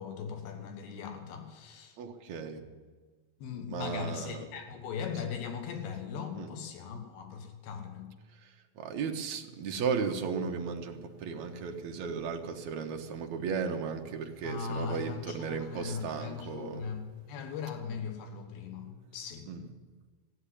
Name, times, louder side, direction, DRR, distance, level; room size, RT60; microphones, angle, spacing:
voice 1, 0.0-2.0 3.4-8.1 14.4-19.5, left 6 dB, 90° left, 5 dB, 3.2 m, -39 dB
voice 2, 2.0-2.7 3.7-4.5 6.4-6.5 8.3-16.8 19.5-19.7, right 6 dB, 65° right, 4 dB, 2.0 m, -35 dB
15.5 x 8.1 x 9.9 m, 1.5 s
omnidirectional pair, 4.2 m